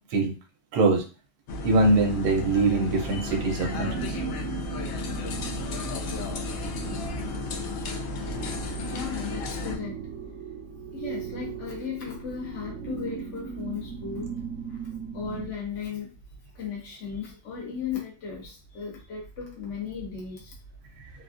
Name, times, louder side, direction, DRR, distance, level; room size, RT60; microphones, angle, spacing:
voice 1, 0.7-1.0 1.6-4.2, right 2 dB, 85° right, 2 dB, 1.3 m, -23 dB
sound 1, 1.5-9.8, left 2 dB, 70° left, 0.7 m, -33 dB
sound 2, 3.5-15.5, right 6 dB, 65° right, 0.8 m, -38 dB
voice 2, 8.8-10.0 10.9-14.3 14.7-20.6, left 6 dB, 55° left, -3 dB, 1.2 m, -36 dB
3.4 x 2.3 x 2.5 m, 0.34 s
omnidirectional pair, 1.6 m